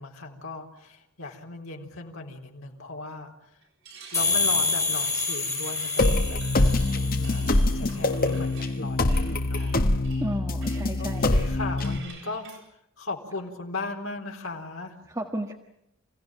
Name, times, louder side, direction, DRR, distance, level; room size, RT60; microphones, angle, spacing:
voice 1, 0.0-3.3 4.1-6.4 6.9-9.8 11.0-12.7 13.0-15.0, left 3 dB, 70° left, 2 dB, 4.0 m, -37 dB
sound 1, 3.6-12.6, right 4 dB, 65° right, 7.4 m, -46 dB
sound 2, 4.1-7.7, left 3 dB, 15° left, 3.2 m, -27 dB
sound 3, 6.0-12.0, left 2 dB, 45° left, 1.3 m, -24 dB
voice 2, 10.2-11.3 15.1-15.5, right 1 dB, 15° right, 3 dB, 1.6 m, -33 dB
29.0 x 16.5 x 9.1 m, 0.81 s
head